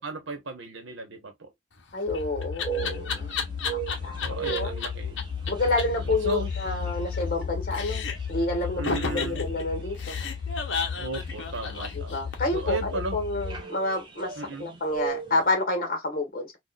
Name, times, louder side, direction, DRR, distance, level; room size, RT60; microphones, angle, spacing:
voice 1, 0.0-1.5 4.2-5.2 6.0-6.5 8.8-9.4 11.0-13.2 14.4-14.8, right 3 dB, 75° right, 1.1 m, -35 dB
Laughter, 1.8-4.9 5.2-5.3 5.5-5.6 5.8-5.9 6.1-7.4 7.7-8.3 8.8-12.6, left 5 dB, 65° left, 0.9 m, -32 dB
voice 2, 1.9-3.4 3.7-4.2 4.4-4.7 5.5-8.0 8.3-10.2 12.1-12.8 13.1-14.3 14.6-16.6, left 2 dB, 45° left, 1.5 m, -29 dB
sound 1, 2.1-13.6, left 6 dB, 90° left, 0.4 m, -35 dB
sound 2, 2.7-15.5, right 9 dB, 25° right, 0.7 m, -40 dB
4.1 x 2.5 x 2.3 m
head